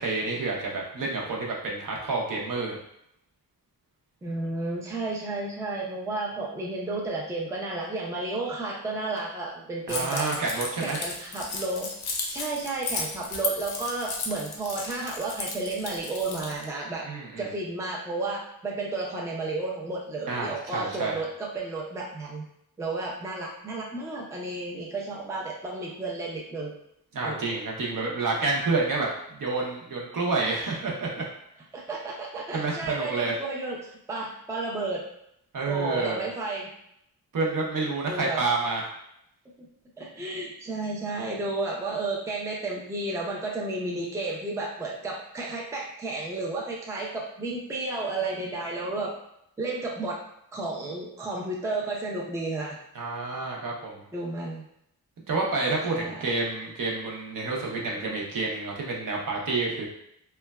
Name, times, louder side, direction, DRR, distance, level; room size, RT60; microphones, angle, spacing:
voice 1, 0.0-2.8 9.9-11.0 17.0-17.5 20.3-21.2 27.1-31.3 32.5-33.3 35.5-36.2 37.3-38.8 52.9-54.0 55.3-59.9, right 3 dB, 55° right, -2 dB, 0.7 m, -29 dB
voice 2, 4.2-10.3 10.8-11.9 12.3-17.1 17.4-22.4 22.8-26.7 27.2-27.6 31.7-35.0 35.6-36.7 38.1-38.4 39.6-39.7 40.0-49.1 49.6-50.2 50.5-52.8 54.1-54.6 55.9-56.1, right 2 dB, 10° right, -3 dB, 0.4 m, -32 dB
Keys jangling, 9.9-16.6, left 3 dB, 70° left, 0.6 m, -34 dB
3.1 x 2.1 x 2.2 m, 0.76 s
wide cardioid pair, 110°, 38 cm